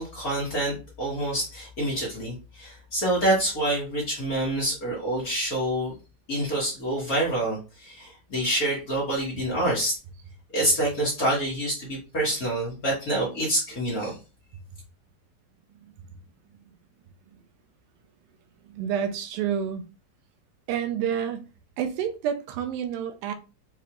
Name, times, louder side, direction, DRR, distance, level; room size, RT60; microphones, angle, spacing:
voice 1, 0.0-5.9 6.3-10.0 10.5-14.2, right 1 dB, 80° left, 0.8 m, -27 dB
voice 2, 18.6-19.8 20.7-21.5 21.8-23.3, right 8 dB, 80° right, 2.4 m, -29 dB
6.7 x 2.4 x 2.9 m
omnidirectional pair, 4.2 m